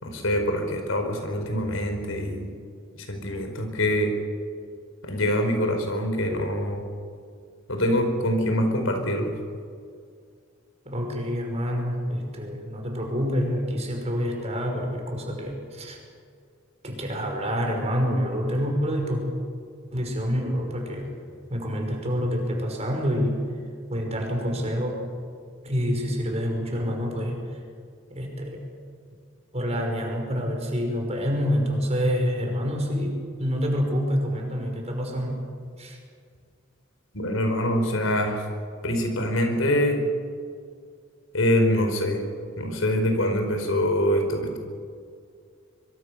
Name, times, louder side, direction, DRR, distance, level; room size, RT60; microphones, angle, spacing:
voice 1, 0.0-2.5 3.0-4.1 5.0-6.8 7.7-9.4 37.1-38.4 38.8-40.0 41.3-42.2 42.6-44.6, equal, 85° left, 5 dB, 4.8 m, -24 dB
voice 2, 10.9-16.0 16.8-19.2 19.9-21.1 21.5-23.4 23.9-25.0 25.6-27.4 28.1-28.6 29.5-35.4 35.8-36.0, equal, 35° right, 1 dB, 5.7 m, -27 dB
24.5 x 23.5 x 6.7 m, 2.2 s
head